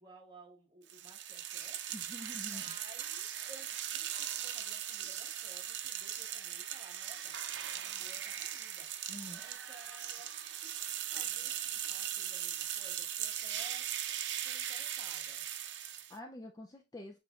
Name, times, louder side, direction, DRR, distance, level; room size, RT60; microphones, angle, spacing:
voice 1, 0.0-2.0 2.3-7.3 7.8-10.3 10.6-10.8 11.1-13.9 14.4-15.4, right 2 dB, 20° right, 1.2 m, -58 dB
sound 1, 0.9-16.2, right 10 dB, 65° right, 0.5 m, -39 dB
voice 2, 1.9-2.8 9.1-9.4 15.8-17.2, left 1 dB, 20° left, 0.3 m, -47 dB
7.4 x 3.0 x 2.3 m
head